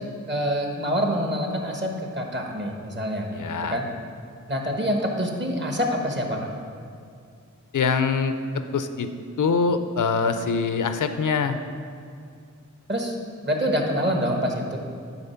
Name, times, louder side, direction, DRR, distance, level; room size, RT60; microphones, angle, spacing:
voice 1, 0.3-3.3 3.7-3.8 4.5-6.4 12.9-13.1 13.4-14.8, equal, 35° right, 1 dB, 1.1 m, -26 dB
voice 2, 3.3-3.8 7.7-9.1 9.4-11.6, left 5 dB, 80° left, 9 dB, 0.5 m, -24 dB
8.7 x 3.9 x 5.6 m, 2.3 s
wide cardioid pair, 65°, 30 cm